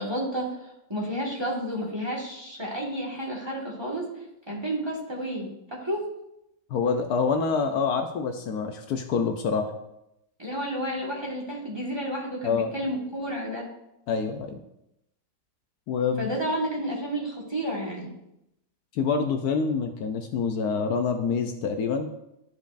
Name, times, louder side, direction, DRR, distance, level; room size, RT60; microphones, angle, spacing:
voice 1, 0.0-4.1 4.5-6.1 10.4-13.7 16.2-18.2, equal, 15° right, -3 dB, 1.5 m, -31 dB
voice 2, 6.7-9.7 12.4-12.7 14.1-14.6 15.9-16.3 18.9-22.1, left 5 dB, 70° left, 5 dB, 1.1 m, -26 dB
12.5 x 5.2 x 2.5 m, 0.83 s
omnidirectional pair, 1.8 m